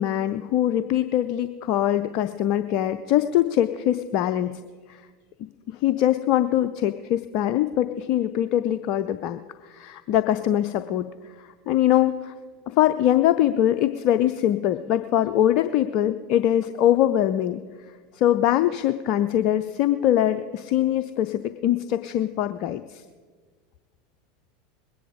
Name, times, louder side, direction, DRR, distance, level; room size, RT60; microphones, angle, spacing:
voice 1, 0.0-4.6 4.9-5.0 5.7-12.3 12.7-17.6 18.1-23.0, left 12 dB, 50° left, 11 dB, 0.5 m, -23 dB
21.0 x 10.0 x 5.1 m, 1.5 s
figure-of-eight pair, 80°, 0 cm